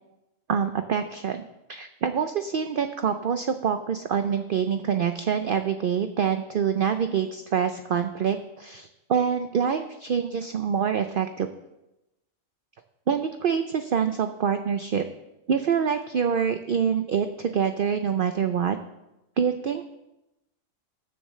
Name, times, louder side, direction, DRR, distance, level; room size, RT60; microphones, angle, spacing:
voice 1, 0.5-1.4 1.7-11.5 13.1-15.0 15.5-18.8 19.4-19.8, right 7 dB, 55° right, 8 dB, 0.6 m, -26 dB
21.5 x 7.2 x 3.2 m, 0.94 s
omnidirectional pair, 1.4 m